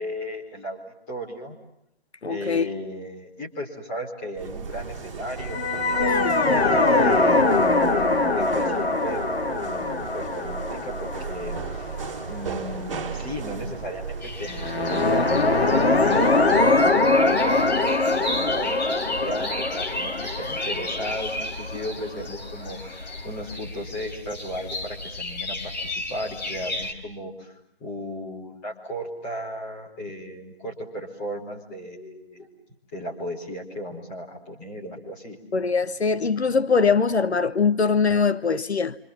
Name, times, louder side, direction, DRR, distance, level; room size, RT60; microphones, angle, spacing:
voice 1, 0.0-1.5 2.3-7.8 8.3-12.0 12.2-14.1 14.4-16.0 16.3-32.5 32.9-35.4, equal, 15° left, 4.5 m, -35 dB
voice 2, 2.2-2.7 6.2-6.7 35.5-39.0, left 5 dB, 90° left, 1.4 m, -22 dB
sound 1, 4.3-17.0, right 5 dB, 30° right, 4.0 m, -36 dB
sound 2, 5.4-12.7 14.5-22.3, left 3 dB, 70° left, 3.0 m, -23 dB
sound 3, 14.2-26.9, left 2 dB, 45° left, 4.5 m, -34 dB
29.0 x 26.5 x 7.3 m
figure-of-eight pair, 170°, 32 cm